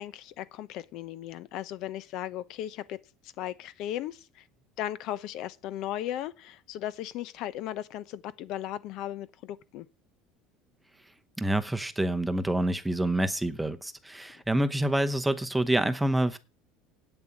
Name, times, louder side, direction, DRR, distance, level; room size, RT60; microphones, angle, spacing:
voice 1, 0.0-4.4 4.8-9.9, left 12 dB, 50° left, 0.7 m, -36 dB
voice 2, 11.4-16.4, right 1 dB, 5° right, 0.9 m, -27 dB
9.0 x 7.1 x 8.6 m
cardioid pair, 155°, 0 cm